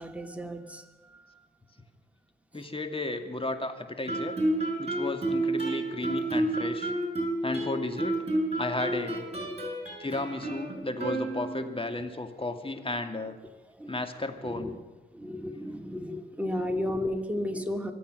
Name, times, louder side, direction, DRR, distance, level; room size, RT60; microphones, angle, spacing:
voice 1, 0.0-1.4 5.9-6.1 9.3-9.7 13.8-13.9 14.4-14.7 15.1-17.9, left 1 dB, 5° right, 3 dB, 2.8 m, -34 dB
voice 2, 2.5-4.4 4.8-6.9 7.4-8.2 8.6-9.3 10.0-13.4 13.9-14.7, left 2 dB, 25° left, 7 dB, 2.4 m, -33 dB
Guitar, 4.1-11.8, right 1 dB, 30° right, 5.7 m, -30 dB
25.0 x 8.7 x 6.6 m, 1.2 s
supercardioid pair, 40°, 21 cm